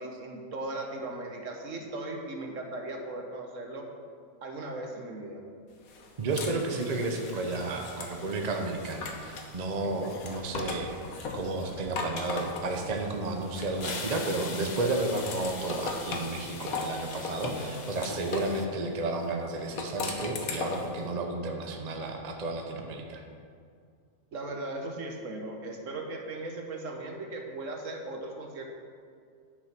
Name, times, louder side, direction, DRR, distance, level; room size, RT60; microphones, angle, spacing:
voice 1, 0.0-3.9 4.4-5.4 24.3-28.7, right 2 dB, 60° right, 2 dB, 1.4 m, -38 dB
sound 1, 5.9-9.5 10.0-14.1 14.5-18.6 19.6-21.0, left 4 dB, 70° left, 1.4 m, -38 dB
voice 2, 6.2-23.2, right 2 dB, 35° right, 3 dB, 0.7 m, -32 dB
sound 2, 6.8-18.7, left 4 dB, 45° left, 0.5 m, -44 dB
10.5 x 6.1 x 5.9 m, 2.2 s
omnidirectional pair, 1.6 m